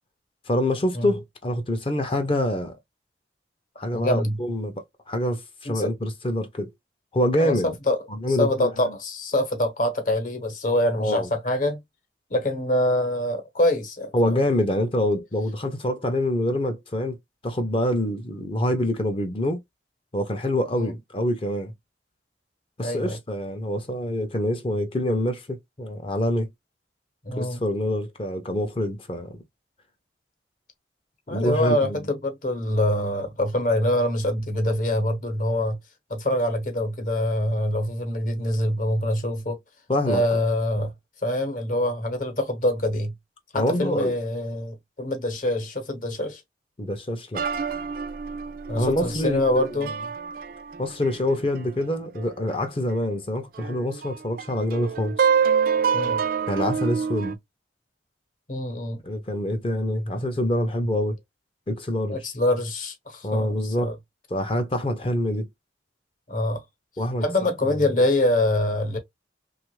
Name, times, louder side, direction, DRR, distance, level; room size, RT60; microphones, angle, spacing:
voice 1, 0.5-2.8 3.8-6.7 7.1-7.7 8.2-8.7 11.0-11.3 14.1-17.2 17.4-19.6 20.1-21.7 22.8-26.5 27.4-29.4 31.3-32.0 39.9-40.2 43.5-44.1 46.8-47.4 48.7-49.7 50.8-55.2 56.5-57.4 59.0-61.2 61.7-62.2 63.2-63.9 64.3-65.5 67.0-67.8, left 1 dB, 30° left, 0.5 m, -26 dB
voice 2, 3.9-4.4 5.7-5.9 7.4-8.0 8.3-11.8 12.3-14.4 20.7-20.9 22.8-23.2 27.2-27.6 31.3-35.8 36.1-39.6 40.1-40.9 41.2-43.1 43.5-46.4 48.7-49.9 55.9-56.2 58.5-59.0 62.1-63.9 66.3-66.6 67.2-69.0, left 1 dB, 45° left, 0.9 m, -25 dB
sound 1, 47.3-52.5 52.9-53.0 53.6-57.3, right 6 dB, 50° right, 0.3 m, -27 dB
3.0 x 2.3 x 3.0 m
head